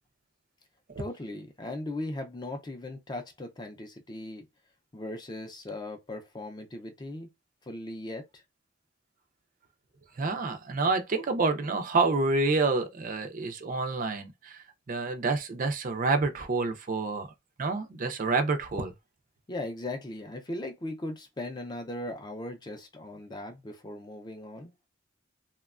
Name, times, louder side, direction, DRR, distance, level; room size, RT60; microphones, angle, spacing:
voice 1, 1.0-4.4 4.9-7.3 7.7-8.3 19.5-24.7, left 1 dB, 20° left, 0.4 m, -38 dB
voice 2, 10.2-17.3 17.6-18.9, right 3 dB, 40° right, 0.4 m, -28 dB
2.9 x 2.2 x 2.3 m
head